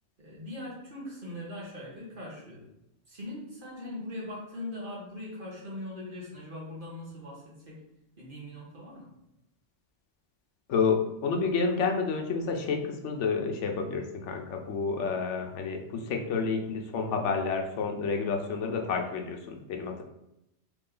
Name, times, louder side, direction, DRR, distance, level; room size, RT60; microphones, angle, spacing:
voice 1, 0.2-2.7 3.1-7.8 8.2-9.1, left 1 dB, 45° right, -5 dB, 1.6 m, -41 dB
voice 2, 10.7-20.0, left 5 dB, 85° left, 3 dB, 1.0 m, -29 dB
3.9 x 3.2 x 3.8 m, 0.85 s
omnidirectional pair, 1.2 m